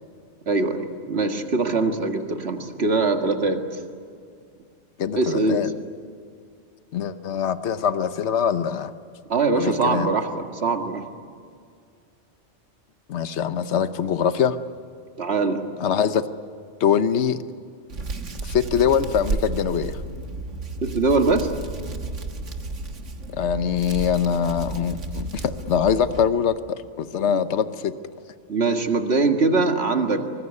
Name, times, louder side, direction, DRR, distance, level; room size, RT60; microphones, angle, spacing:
voice 1, 0.5-3.6 5.2-5.6 9.3-11.1 15.2-15.6 20.8-21.5 27.3-27.4 28.5-30.2, right 3 dB, 60° right, 5 dB, 2.2 m, -22 dB
voice 2, 5.0-5.7 6.9-8.9 9.5-10.1 13.1-14.6 15.8-16.2 16.8-17.4 18.4-20.0 23.3-27.9, left 8 dB, 70° left, 11 dB, 1.2 m, -23 dB
Hands, 17.9-26.3, right 2 dB, 80° right, 1.9 m, -32 dB
24.5 x 20.5 x 9.6 m, 2.3 s
omnidirectional pair, 1.2 m